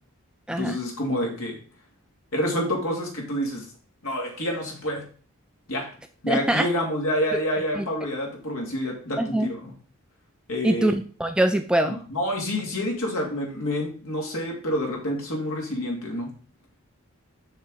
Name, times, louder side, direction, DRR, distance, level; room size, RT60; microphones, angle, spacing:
voice 1, 0.5-1.6 2.3-3.7 4.0-5.0 5.7-5.9 6.2-9.7 10.5-10.9 11.8-16.3, left 1 dB, 75° left, 0 dB, 2.7 m, -28 dB
voice 2, 6.3-6.7 7.8-7.9 9.2-9.5 10.6-12.0, right 1 dB, 5° right, 7 dB, 0.3 m, -23 dB
6.6 x 5.9 x 4.7 m, 0.41 s
head